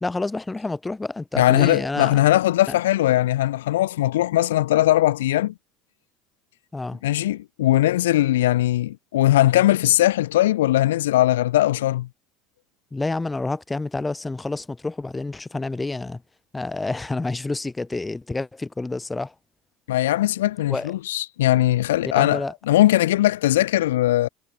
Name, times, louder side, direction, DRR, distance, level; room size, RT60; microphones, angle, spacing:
voice 1, 0.0-2.2 6.7-7.0 12.9-16.2 16.5-19.3 20.7-20.9 22.1-22.5, left 3 dB, 15° left, 1.5 m, -28 dB
voice 2, 1.3-5.5 7.0-12.1 19.9-24.3, left 14 dB, 70° left, 1.5 m, -20 dB
figure-of-eight pair, 70°, 0 cm